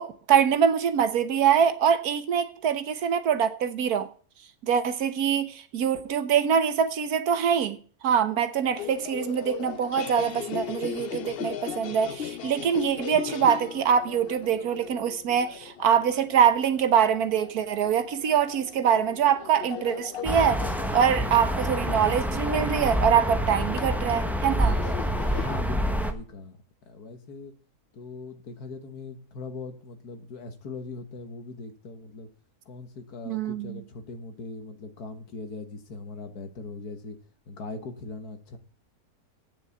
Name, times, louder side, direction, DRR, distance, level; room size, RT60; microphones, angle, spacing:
voice 1, 0.0-4.1 4.6-7.8 8.0-20.7 20.9-24.8 33.3-33.8, right 8 dB, 80° right, 1.5 m, -24 dB
sound 1, 8.6-25.6, left 9 dB, 60° left, 0.6 m, -38 dB
sound 2, 20.2-26.1, equal, ahead, 0.7 m, -27 dB
voice 2, 25.4-26.6 26.9-27.5 27.9-32.3 32.7-37.2 37.5-38.6, left 3 dB, 85° left, 1.9 m, -40 dB
8.8 x 6.9 x 8.3 m
omnidirectional pair, 1.6 m